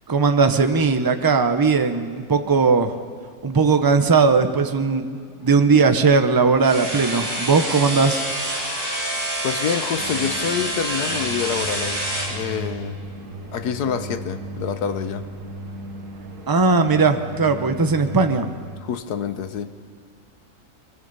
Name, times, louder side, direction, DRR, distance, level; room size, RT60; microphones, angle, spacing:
voice 1, 0.1-3.0 3.4-8.2 16.5-18.5, right 4 dB, 20° right, 8 dB, 0.7 m, -18 dB
sound 1, 6.6-12.3, right 1 dB, 55° right, 6.2 m, -27 dB
voice 2, 9.4-13.0 13.5-15.3 18.8-19.7, left 7 dB, 90° left, 10 dB, 1.5 m, -27 dB
sound 2, 9.9-18.8, right 2 dB, 80° right, 2.3 m, -36 dB
23.5 x 22.5 x 5.5 m, 2.1 s
omnidirectional pair, 1.6 m